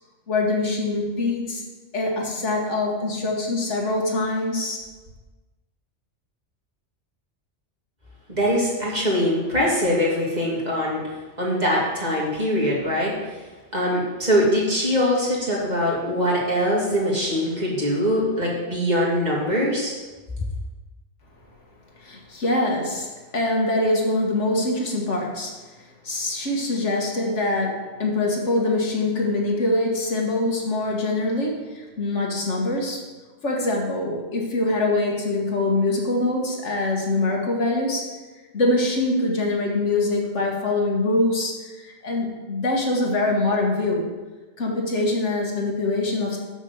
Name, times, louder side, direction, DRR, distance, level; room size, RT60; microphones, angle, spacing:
voice 1, 0.3-1.6 1.9-4.9 22.0-25.6 26.0-33.1 33.4-38.2 38.5-44.1 44.6-46.4, left 2 dB, 80° left, -1 dB, 1.8 m, -24 dB
voice 2, 8.3-11.0 11.4-13.1 13.7-20.0, equal, 35° right, -5 dB, 2.4 m, -22 dB
6.3 x 6.3 x 6.6 m, 1.2 s
omnidirectional pair, 1.2 m